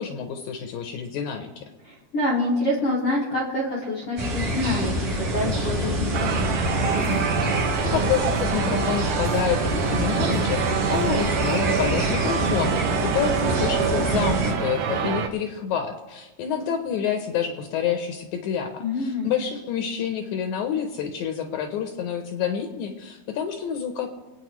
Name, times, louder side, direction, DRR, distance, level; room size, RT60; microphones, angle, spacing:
voice 1, 0.0-1.7 7.4-24.1, left 8 dB, 90° left, 6 dB, 1.7 m, -28 dB
voice 2, 1.8-6.6 18.8-19.3, left 1 dB, 45° left, -5 dB, 2.1 m, -26 dB
sound 1, 4.2-14.5, right 1 dB, 45° right, 2.9 m, -26 dB
sound 2, 6.1-15.3, right 7 dB, 85° right, 1.6 m, -26 dB
26.5 x 9.1 x 3.1 m, 1.2 s
omnidirectional pair, 4.5 m